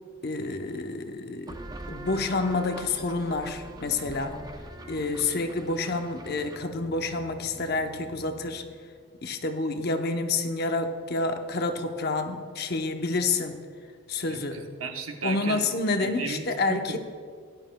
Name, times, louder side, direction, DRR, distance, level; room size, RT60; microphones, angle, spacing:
voice 1, 0.2-1.6 1.9-4.3 4.9-8.6 9.2-13.6 14.1-14.6 15.2-17.0, left 3 dB, 45° left, 6 dB, 0.8 m, -28 dB
sound 1, 1.5-8.8, right 1 dB, 20° right, 0.5 m, -43 dB
voice 2, 14.3-15.7 16.0-16.8, right 4 dB, 70° right, 3 dB, 1.0 m, -35 dB
18.0 x 11.5 x 2.2 m, 2.1 s
head